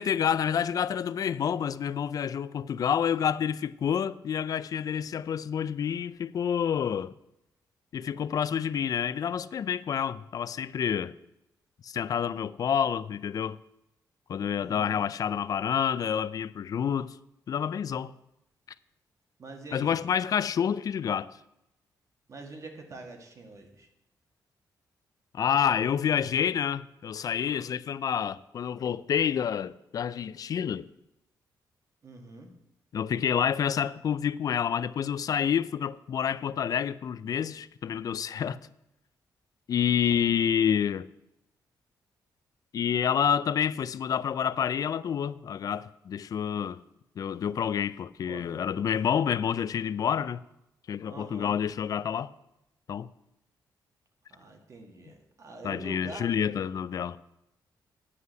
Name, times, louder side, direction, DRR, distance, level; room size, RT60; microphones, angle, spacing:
voice 1, 0.0-7.1 7.9-11.1 11.8-13.6 14.3-17.2 17.5-18.1 19.7-21.3 25.3-30.9 32.9-38.6 39.7-41.1 42.7-46.8 47.2-50.4 50.9-52.3 52.9-53.1 55.6-57.2, left 8 dB, 55° left, 0.4 m, -28 dB
voice 2, 14.6-15.0 19.4-19.9 22.3-23.9 32.0-32.5 40.1-40.2 48.2-48.5 51.1-51.5 54.3-56.7, right 2 dB, 45° right, 1.9 m, -45 dB
9.6 x 5.6 x 7.9 m
cardioid pair, 100°, 7 cm